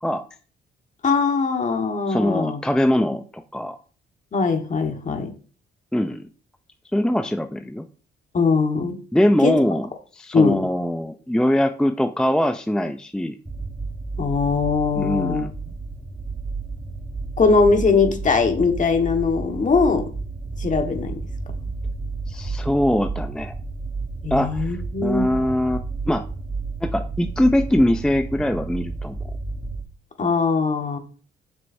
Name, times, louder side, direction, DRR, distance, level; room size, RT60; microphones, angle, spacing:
voice 1, 1.0-2.6 4.3-5.3 8.3-9.0 9.4-9.6 10.3-10.6 14.2-15.5 17.4-20.1 20.6-21.1 24.2-25.3 30.2-31.0, left 4 dB, 40° left, 5 dB, 1.5 m, -21 dB
voice 2, 2.1-3.8 5.9-6.2 6.9-7.8 9.1-9.9 10.1-13.4 15.0-15.5 22.3-23.5 24.3-26.2 26.8-29.2, left 1 dB, 5° left, 8 dB, 0.5 m, -22 dB
sound 1, 13.5-29.8, right 3 dB, 10° right, 1.3 m, -31 dB
7.8 x 6.3 x 2.7 m, 0.40 s
cardioid pair, 90°, 20 cm